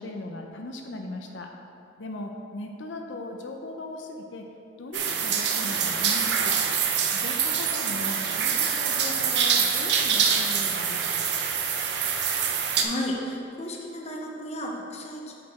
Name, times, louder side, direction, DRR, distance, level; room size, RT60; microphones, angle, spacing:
voice 1, 0.0-1.5 2.0-4.5 4.8-6.5 7.1-11.3, left 2 dB, 85° left, 3 dB, 0.6 m, -38 dB
sound 1, 4.9-12.8, right 7 dB, 65° right, 0.7 m, -25 dB
voice 2, 12.8-15.3, equal, 35° left, 0 dB, 0.9 m, -33 dB
7.9 x 6.7 x 4.3 m, 2.7 s
head